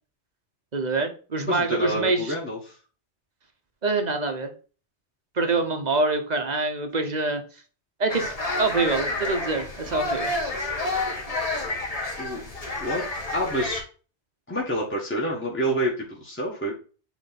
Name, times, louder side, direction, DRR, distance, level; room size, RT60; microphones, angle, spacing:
voice 1, 0.7-2.3 3.8-4.5 5.4-7.4 8.0-8.3 8.6-10.3, right 3 dB, 40° right, 5 dB, 1.2 m, -25 dB
voice 2, 1.4-2.8 12.2-12.4 12.8-13.0 13.3-13.8 14.5-16.7, equal, 10° left, -4 dB, 1.4 m, -28 dB
sound 1, 8.1-13.8, left 2 dB, 30° left, 1.6 m, -29 dB
8.2 x 3.4 x 4.2 m, 0.37 s
omnidirectional pair, 1.2 m